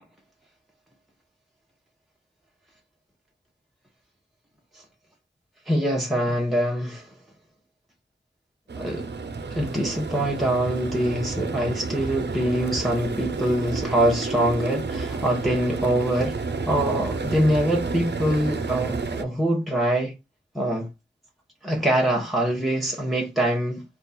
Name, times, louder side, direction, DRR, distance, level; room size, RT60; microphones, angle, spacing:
voice 1, 5.7-7.1 8.8-9.1 9.5-16.4 16.7-20.1 20.5-20.9 21.6-23.8, right 1 dB, ahead, 1.0 m, -24 dB
sound 1, 8.7-19.2, right 4 dB, 65° right, 0.5 m, -30 dB
4.4 x 2.3 x 4.1 m
wide cardioid pair, 60°, 19 cm